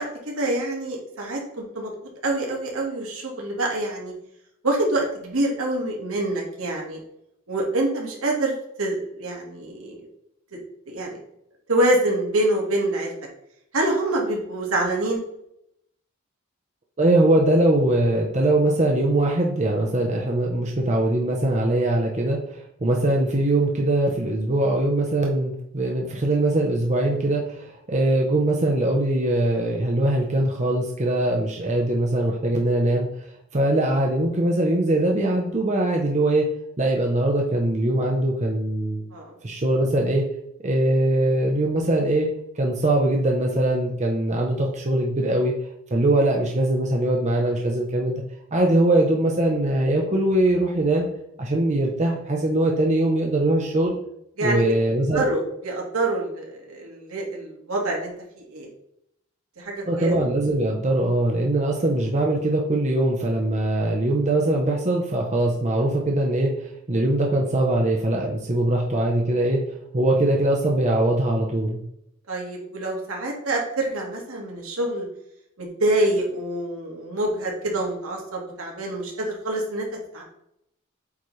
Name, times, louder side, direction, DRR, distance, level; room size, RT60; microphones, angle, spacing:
voice 1, 0.0-1.9 2.2-4.1 4.6-7.0 7.5-10.1 10.5-10.6 10.9-11.2 11.7-13.1 13.7-15.2 39.1-39.3 54.4-54.7 55.1-58.1 58.4-58.7 59.6-60.1 72.3-75.1 75.6-79.9 80.1-80.2, right 1 dB, 75° right, -1 dB, 1.9 m, -26 dB
voice 2, 17.0-33.3 33.5-36.5 36.8-39.0 39.4-40.2 40.6-42.3 42.5-45.5 45.9-48.2 48.5-51.1 51.4-53.9 54.4-55.2 59.9-69.6 69.9-71.8, right 1 dB, 30° right, 0 dB, 0.8 m, -22 dB
8.5 x 4.1 x 3.2 m, 0.76 s
head